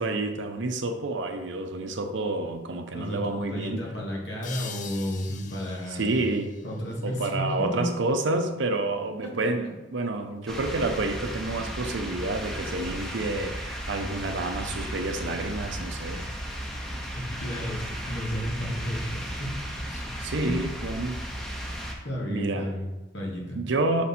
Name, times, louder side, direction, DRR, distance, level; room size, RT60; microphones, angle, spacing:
voice 1, 0.0-3.8 5.9-6.5 7.0-16.2 20.2-21.2 22.3-22.7 23.6-24.1, right 2 dB, 80° right, 6 dB, 0.6 m, -29 dB
voice 2, 2.9-6.1 6.6-7.9 9.2-9.3 9.6-9.7 17.2-19.5 19.8-20.0 20.4-20.5 22.0-23.6, equal, 65° left, -2 dB, 1.5 m, -33 dB
sound 1, 4.4-7.8, left 7 dB, 45° left, 0.5 m, -44 dB
sound 2, 10.5-21.9, equal, ahead, 0.8 m, -35 dB
5.8 x 4.2 x 4.2 m, 1.1 s
head